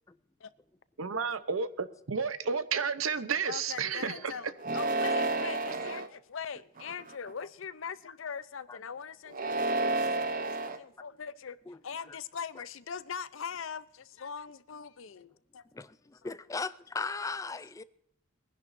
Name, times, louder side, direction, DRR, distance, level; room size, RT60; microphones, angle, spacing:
voice 1, 1.0-4.3, right 5 dB, 75° right, 0.8 m, -31 dB
voice 2, 3.5-11.6 11.8-15.6, left 6 dB, 70° left, 0.6 m, -41 dB
sound 1, 4.6-6.1 6.8-7.3 9.3-10.8, right 2 dB, 40° right, 0.8 m, -30 dB
voice 3, 15.7-17.8, left 4 dB, 15° left, 0.4 m, -38 dB
22.5 x 10.5 x 2.6 m
head